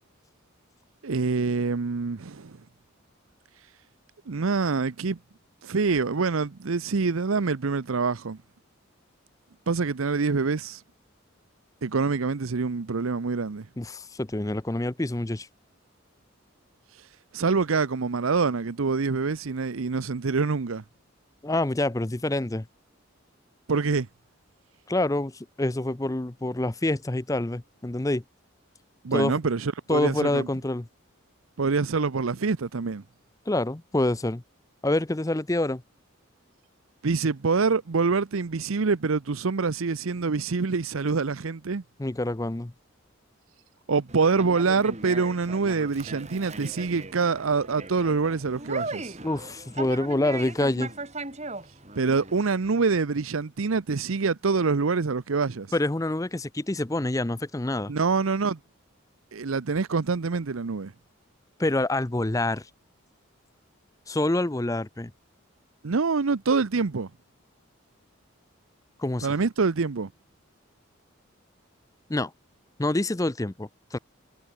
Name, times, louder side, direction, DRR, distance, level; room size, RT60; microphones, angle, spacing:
voice 1, 1.0-2.6 4.3-5.2 5.6-8.4 9.7-10.8 11.8-13.7 17.3-20.8 23.7-24.1 29.0-30.5 31.6-33.0 37.0-41.8 43.9-49.2 52.0-55.7 57.9-58.6 59.3-60.9 65.8-67.1 69.2-70.1, right 4 dB, 85° right, 0.7 m, -25 dB
voice 2, 13.8-15.5 21.4-22.7 24.9-28.2 29.1-29.3 29.9-30.9 33.5-34.4 34.8-35.8 42.0-42.7 49.2-50.9 55.7-57.9 61.6-62.7 64.1-65.1 69.0-69.3 72.1-72.3 72.8-74.0, left 1 dB, 15° left, 0.6 m, -26 dB
Conversation, 44.1-52.5, right 3 dB, 35° right, 5.1 m, -38 dB
head